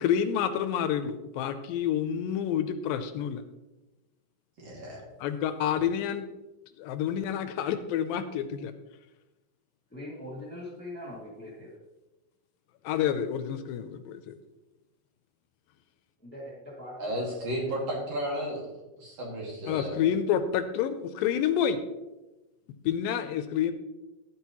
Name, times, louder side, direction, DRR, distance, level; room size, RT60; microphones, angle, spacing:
voice 1, 0.0-3.4 5.2-6.3 6.8-8.7 12.8-14.3 19.7-21.8 22.9-23.7, left 9 dB, 85° left, 10 dB, 2.3 m, -28 dB
voice 2, 4.6-5.1 17.0-18.6 19.0-20.0, equal, 45° right, -3 dB, 3.2 m, -33 dB
voice 3, 9.9-11.8 16.2-17.2 17.6-17.7, left 1 dB, 5° left, -6 dB, 1.0 m, -42 dB
12.0 x 9.2 x 3.0 m, 1.0 s
omnidirectional pair, 4.2 m